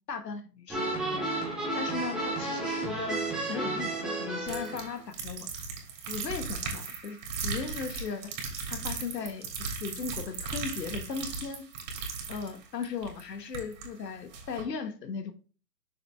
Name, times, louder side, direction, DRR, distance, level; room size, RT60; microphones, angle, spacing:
voice 1, 0.1-1.2 1.7-5.5 6.1-8.3 8.7-9.5 9.7-11.7 12.3-15.3, left 5 dB, 85° left, 1.3 m, -37 dB
sound 1, 0.7-5.0, right 2 dB, ahead, 0.7 m, -32 dB
sound 2, 4.5-13.9 14.3-14.6, right 4 dB, 45° right, 2.7 m, -37 dB
6.4 x 5.4 x 3.4 m
hypercardioid pair, 150°, 48 cm